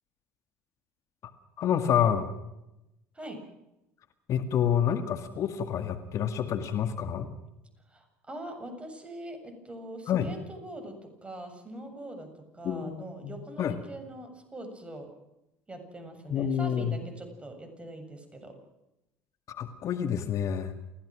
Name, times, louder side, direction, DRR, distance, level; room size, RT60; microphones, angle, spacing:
voice 1, 1.6-2.3 4.3-7.3 10.1-10.3 12.6-13.8 16.3-17.0 19.5-20.7, left 8 dB, 50° left, 8 dB, 2.0 m, -28 dB
voice 2, 7.9-12.3 12.5-15.1 15.7-18.5, right 1 dB, 15° right, 6 dB, 7.4 m, -42 dB
29.5 x 16.0 x 6.3 m, 0.91 s
hypercardioid pair, 70°, 7 cm